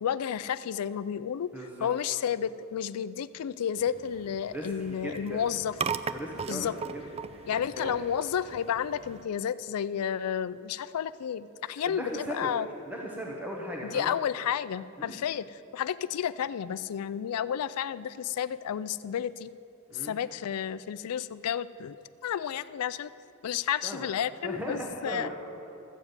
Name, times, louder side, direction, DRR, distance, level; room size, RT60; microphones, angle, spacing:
voice 1, 0.0-5.7 6.5-6.7 7.5-12.7 13.8-19.5 19.9-23.1 23.4-25.3, left 8 dB, 80° left, 16 dB, 0.4 m, -31 dB
voice 2, 1.5-1.9 4.5-5.4 6.1-7.0 7.3-7.4 7.7-7.9 11.7-12.5 12.9-14.1 15.0-15.2 19.9-20.1 23.8-24.1 24.4-25.3, right 1 dB, 10° right, -2 dB, 1.1 m, -38 dB
sound 1, 3.8-9.2, right 6 dB, 25° right, 0.3 m, -39 dB
13.5 x 7.3 x 8.0 m, 2.8 s
head